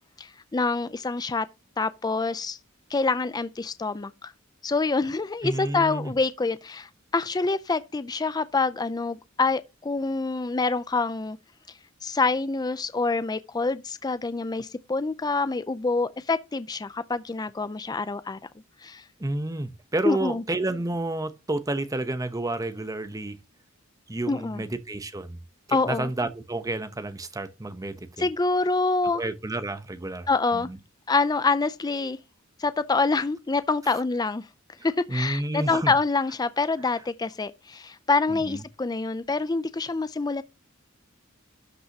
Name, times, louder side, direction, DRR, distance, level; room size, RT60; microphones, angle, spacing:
voice 1, 0.2-1.5 1.8-2.6 2.9-4.3 4.6-11.4 12.0-18.4 18.8-19.0 20.0-20.4 24.3-24.6 25.7-26.1 28.2-29.2 30.3-30.7 31.1-32.2 32.6-34.5 34.8-40.4, left 3 dB, 20° left, 0.4 m, -26 dB
voice 2, 5.4-6.1 19.2-23.4 24.1-25.4 25.7-28.3 29.1-30.8 33.9-34.0 35.1-35.9 38.3-38.6, right 2 dB, 15° right, 0.8 m, -30 dB
12.5 x 5.5 x 2.8 m
head